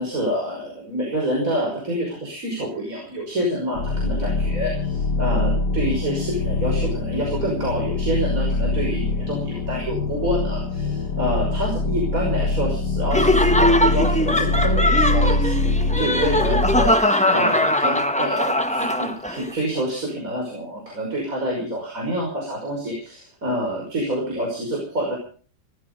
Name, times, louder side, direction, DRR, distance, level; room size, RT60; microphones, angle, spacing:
voice 1, 0.0-15.7 16.0-25.2, right 1 dB, 45° right, -1 dB, 6.1 m, -27 dB
sound 1, 3.7-16.9, left 3 dB, 65° left, 2.0 m, -24 dB
Laughter, 13.1-19.4, left 1 dB, 5° left, 0.9 m, -20 dB
18.5 x 14.0 x 5.4 m, 0.42 s
omnidirectional pair, 2.0 m